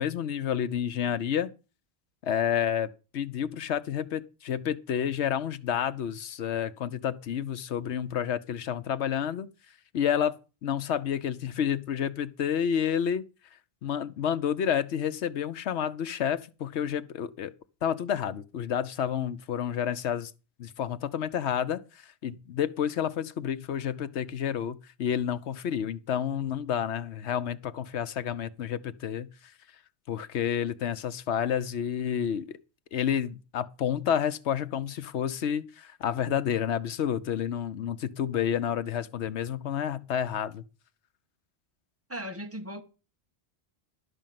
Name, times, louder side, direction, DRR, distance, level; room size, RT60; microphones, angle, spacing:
voice 1, 0.0-1.5 2.2-9.5 9.9-13.2 13.8-17.5 17.8-20.3 20.6-21.8 22.2-29.3 30.1-32.6 32.9-40.6, left 9 dB, 85° left, 1.0 m, -30 dB
voice 2, 42.1-42.8, equal, 15° right, 1.3 m, -37 dB
12.0 x 5.3 x 7.5 m
omnidirectional pair, 1.1 m